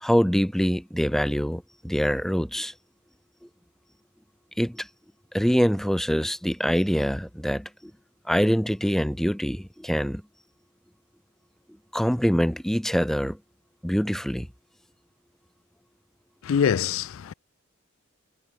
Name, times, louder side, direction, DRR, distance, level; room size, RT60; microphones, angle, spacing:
voice 1, 0.0-2.7 4.6-4.9 5.3-7.9 8.3-10.2 11.9-13.4 13.8-14.5, equal, ahead, 1.2 m, -24 dB
voice 2, 16.4-17.3, left 7 dB, 90° left, 0.4 m, -24 dB
head